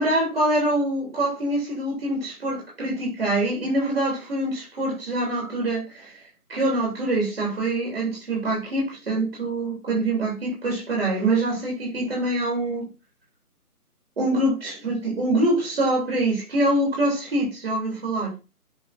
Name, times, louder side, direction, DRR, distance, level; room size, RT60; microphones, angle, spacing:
voice 1, 0.0-12.9 14.2-18.3, right 1 dB, 40° right, 3.4 m, -25 dB
7.0 x 4.8 x 4.3 m
figure-of-eight pair, 170°, 46 cm